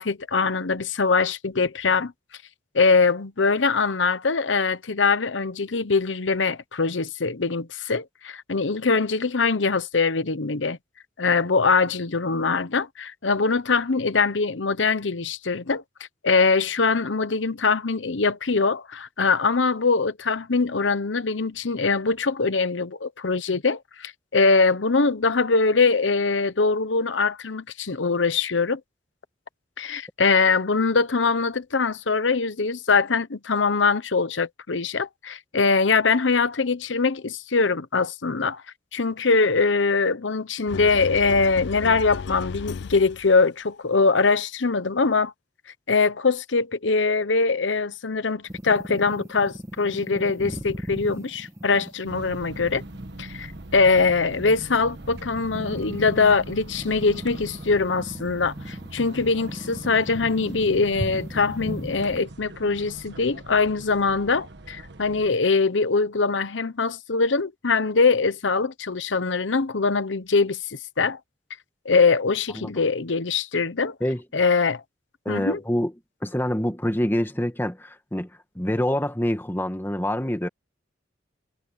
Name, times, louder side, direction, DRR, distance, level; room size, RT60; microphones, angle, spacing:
voice 1, 0.0-2.1 2.7-10.8 11.2-15.8 16.2-28.8 29.8-38.6 38.9-45.3 45.9-52.8 53.2-71.2 71.8-73.9 74.3-74.8 75.3-75.6, left 4 dB, 90° left, 1.0 m, -22 dB
sound 1, 40.7-43.4, left 5 dB, 65° left, 0.4 m, -34 dB
sound 2, 48.5-62.2, equal, 15° right, 1.5 m, -37 dB
sound 3, 52.1-65.3, right 1 dB, 65° right, 1.6 m, -41 dB
voice 2, 75.3-75.9 76.2-78.3 78.6-80.5, equal, 10° left, 2.0 m, -26 dB
head